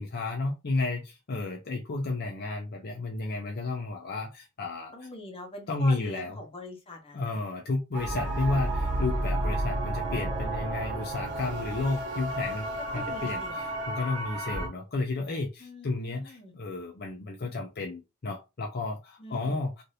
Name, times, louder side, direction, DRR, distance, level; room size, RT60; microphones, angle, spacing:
voice 1, 0.0-5.1 5.7-6.4 7.1-12.7 12.9-13.4 13.9-19.8, left 3 dB, 50° left, 0.5 m, -32 dB
voice 2, 4.9-7.4 12.9-13.6 15.6-16.5 19.2-19.7, left 1 dB, 25° left, 0.9 m, -43 dB
sound 1, 7.9-14.7, right 1 dB, 55° right, 1.1 m, -31 dB
2.6 x 2.5 x 3.2 m
head